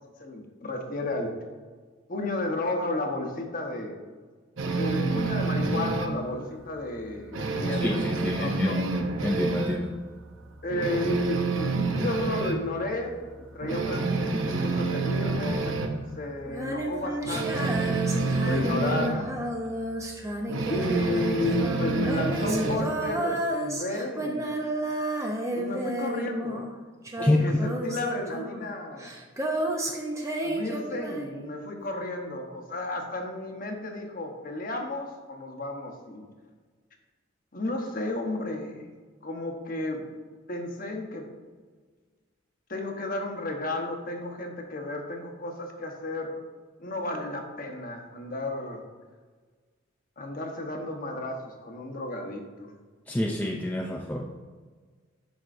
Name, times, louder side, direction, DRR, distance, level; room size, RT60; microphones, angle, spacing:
voice 1, 0.2-1.4 2.1-4.0 4.7-8.8 10.6-15.8 16.1-19.3 20.7-24.6 25.5-26.7 27.1-29.1 30.4-36.3 37.5-38.9 39.2-40.1 40.5-41.3 42.7-46.4 46.8-48.8 50.2-52.7, left 2 dB, 40° left, 3 dB, 1.0 m, -33 dB
sound 1, 4.6-6.2 6.6-6.8 7.1-9.9 10.2-10.3 10.7-12.6 13.1-13.2 13.6-16.0 17.2-19.2 20.5-22.9, right 3 dB, 70° right, 0.8 m, -28 dB
voice 2, 7.8-8.8 9.2-9.9 27.2-27.5 53.1-54.4, left 1 dB, 10° left, 0 dB, 0.3 m, -27 dB
Female singing, 16.4-26.8 27.0-31.5, right 1 dB, 15° right, 0.7 m, -32 dB
11.5 x 4.6 x 2.5 m, 1.5 s
head